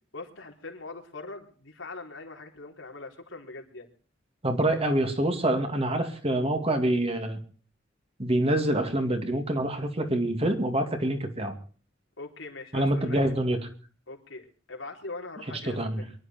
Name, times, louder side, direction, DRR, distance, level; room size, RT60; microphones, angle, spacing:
voice 1, 0.1-3.9 12.2-13.2 14.1-16.1, left 3 dB, 80° left, 2 dB, 3.9 m, -42 dB
voice 2, 4.4-7.4 8.2-11.5 12.7-13.6 15.6-16.1, right 1 dB, 30° right, 6 dB, 2.5 m, -26 dB
23.5 x 11.5 x 4.4 m, 0.41 s
head